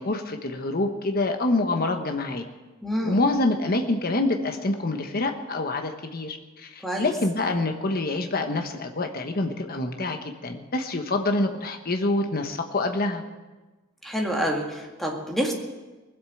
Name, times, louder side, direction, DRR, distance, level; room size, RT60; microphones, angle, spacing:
voice 1, 0.0-2.4 3.0-13.2, left 2 dB, 45° left, 5 dB, 1.1 m, -26 dB
voice 2, 2.8-3.2 6.8-7.1 14.0-15.5, equal, ahead, 0 dB, 2.1 m, -27 dB
20.0 x 8.1 x 7.8 m, 1.2 s
head